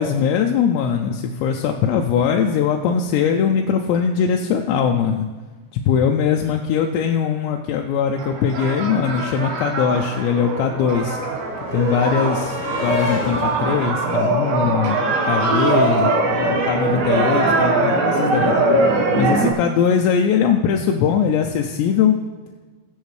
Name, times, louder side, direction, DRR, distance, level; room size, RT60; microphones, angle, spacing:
voice 1, 0.0-5.3 5.9-11.2 11.7-18.5 19.1-22.2, left 7 dB, 90° left, 2 dB, 2.9 m, -21 dB
sound 1, 8.1-19.5, right 2 dB, 65° right, 2.9 m, -21 dB
sound 2, 8.9-9.0 9.1-15.3 16.5-16.6 16.9-17.0, left 3 dB, 25° left, 2.8 m, -33 dB
20.5 x 7.3 x 3.2 m, 1.3 s
omnidirectional pair, 4.9 m